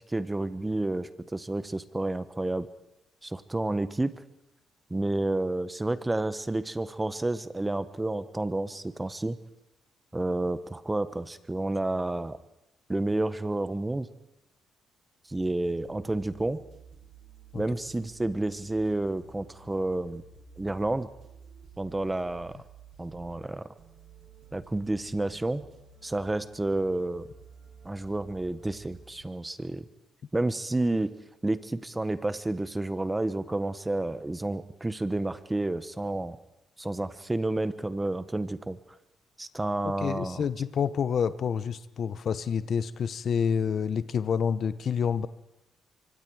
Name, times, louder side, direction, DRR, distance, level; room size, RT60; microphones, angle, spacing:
voice 1, 0.0-2.7 3.2-4.1 4.9-9.4 10.1-12.4 12.9-14.1 15.3-16.6 17.5-20.2 20.6-21.1 21.8-22.6 23.0-23.7 24.5-25.6 26.0-27.3 27.8-29.8 30.3-31.1 31.4-36.4 36.8-38.8 39.4-40.5, right 2 dB, 15° right, 13 dB, 1.2 m, -30 dB
sound 1, 15.3-29.2, right 5 dB, 65° right, 7.2 m, -53 dB
voice 2, 39.8-45.3, left 7 dB, 55° left, 15 dB, 0.8 m, -28 dB
24.5 x 24.0 x 4.8 m, 0.86 s
cardioid pair, 90°, 0 cm